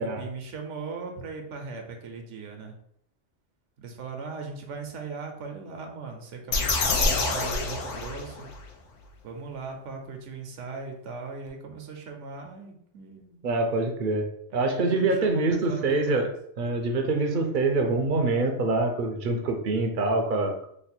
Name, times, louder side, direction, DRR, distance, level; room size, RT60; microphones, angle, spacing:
voice 1, 0.0-2.7 3.8-8.5 9.2-13.4 14.5-16.3, right 4 dB, 80° right, 3 dB, 1.0 m, -39 dB
sound 1, 6.5-8.6, left 3 dB, 80° left, 1.0 m, -26 dB
voice 2, 13.4-14.3 14.5-16.3 16.6-20.5, right 3 dB, 60° right, 4 dB, 0.6 m, -25 dB
3.2 x 2.2 x 4.2 m, 0.71 s
omnidirectional pair, 1.2 m